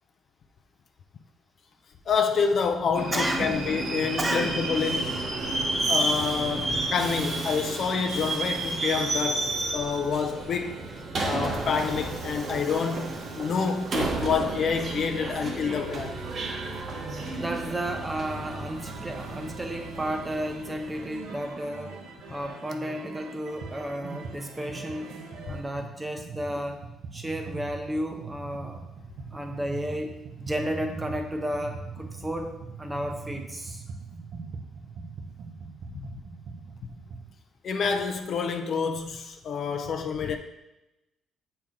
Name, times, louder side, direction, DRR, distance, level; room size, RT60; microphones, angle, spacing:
voice 1, 2.1-5.2 5.9-10.8 11.2-16.2 25.5-25.6 35.9-36.1 37.6-40.4, left 6 dB, 50° left, 0.5 m, -28 dB
Subway metro underground, 2.9-21.4, right 2 dB, 40° right, 1.0 m, -31 dB
voice 2, 3.1-3.6 4.2-4.6 17.4-22.0 22.3-25.1 25.5-26.8 27.1-28.8 29.3-33.8, right 1 dB, 10° right, 0.8 m, -32 dB
sound 1, 15.5-25.6, right 3 dB, 85° right, 1.1 m, -43 dB
sound 2, 23.6-23.8 24.0-37.3, right 5 dB, 55° right, 0.6 m, -41 dB
7.4 x 4.4 x 3.7 m
cardioid pair, 140°, 0 cm